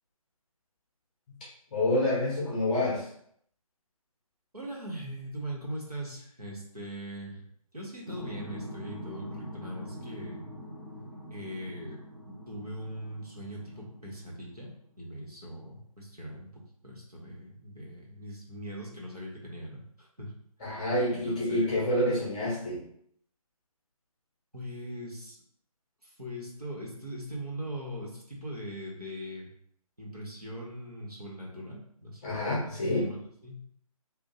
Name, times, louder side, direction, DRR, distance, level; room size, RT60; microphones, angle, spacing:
voice 1, 1.7-3.1 20.6-22.8 32.2-33.1, left 1 dB, 15° left, -7 dB, 0.7 m, -28 dB
voice 2, 4.5-7.4 7.7-10.4 11.3-12.0 12.3-14.7 15.0-20.3 21.1-21.7 24.5-25.4 26.0-29.5 30.0-32.2 32.6-33.6, equal, 90° right, -3 dB, 1.2 m, -41 dB
sound 1, 8.1-14.6, equal, 20° right, 0.8 m, -43 dB
2.6 x 2.4 x 4.1 m, 0.67 s
figure-of-eight pair, 150°, 19 cm